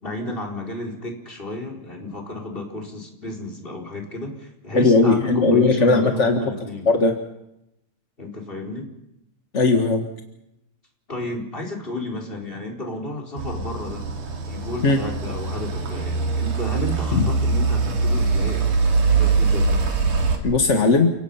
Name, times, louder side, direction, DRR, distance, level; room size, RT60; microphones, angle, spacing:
voice 1, 0.0-6.9 8.2-8.9 11.1-14.0 14.5-18.8 19.1-19.7, left 1 dB, 15° left, 0 dB, 4.5 m, -32 dB
voice 2, 4.7-6.4 6.9-7.1 9.5-10.0 14.8-15.0 17.1-17.3 20.4-21.1, left 3 dB, 35° left, 4 dB, 1.2 m, -17 dB
sound 1, 13.4-20.4, right 4 dB, 65° right, 4.5 m, -22 dB
30.0 x 18.0 x 5.7 m, 0.83 s
omnidirectional pair, 3.8 m